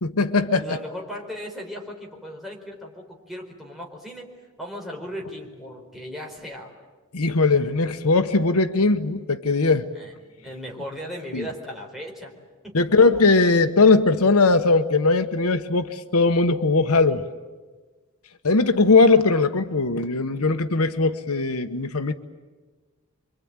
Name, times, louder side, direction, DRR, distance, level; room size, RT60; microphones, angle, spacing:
voice 1, 0.0-0.8 7.1-9.9 11.3-11.4 12.7-17.2 18.4-22.1, left 3 dB, 75° left, 8 dB, 1.1 m, -19 dB
voice 2, 0.5-4.3 4.6-6.7 9.9-12.3 12.6-12.9, equal, ahead, -1 dB, 4.6 m, -37 dB
27.0 x 24.0 x 8.9 m, 1.3 s
head